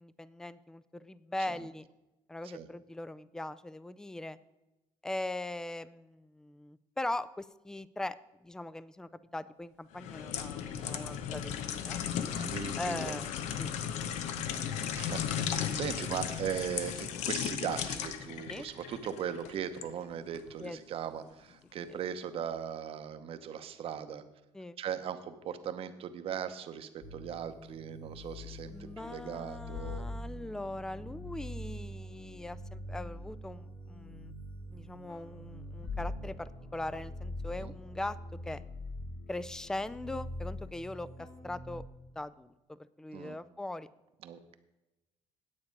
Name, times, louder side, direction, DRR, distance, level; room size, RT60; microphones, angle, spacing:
voice 1, 0.0-1.9 2.3-4.4 5.0-8.2 8.4-12.0 12.8-13.7 18.5-18.6 20.6-20.8 24.5-24.8 28.7-34.3 34.7-38.2 38.4-38.6 39.3-41.8 42.2-42.5 43.0-43.9, left 2 dB, 5° left, 16 dB, 0.4 m, -40 dB
sound 1, 9.9-19.9 20.3-20.5, left 8 dB, 85° left, 0.8 m, -36 dB
voice 2, 12.3-13.2 14.9-24.2 24.8-30.1 37.6-37.7 43.1-43.4 44.2-44.5, right 8 dB, 55° right, 9 dB, 0.9 m, -39 dB
sound 2, 27.0-41.9, left 1 dB, 55° left, 2.3 m, -43 dB
9.7 x 8.3 x 5.3 m, 0.99 s
cardioid pair, 115°, 11 cm